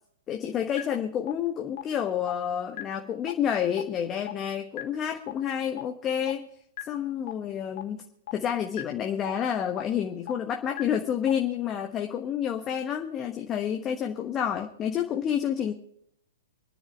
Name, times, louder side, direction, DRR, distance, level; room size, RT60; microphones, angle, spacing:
voice 1, 0.3-6.5 6.9-8.0 8.3-15.7, left 9 dB, 25° left, 3 dB, 1.3 m, -29 dB
sound 1, 0.8-0.9 1.3-1.4 1.8-1.9 2.3-2.4 2.8-2.9 3.3-3.4 3.8-3.9 4.3-4.4 4.8-4.9 5.3-5.4 5.8-5.9 6.3-6.4 6.8-6.9 7.3-7.4 7.8-7.9 8.3-8.4 8.8-8.9 9.3-9.4 9.8-9.9 10.3-10.4 10.8-10.9 11.3-11.4, left 14 dB, 50° left, 1.5 m, -35 dB
27.0 x 10.5 x 3.3 m, 0.72 s
figure-of-eight pair, 110°, 0 cm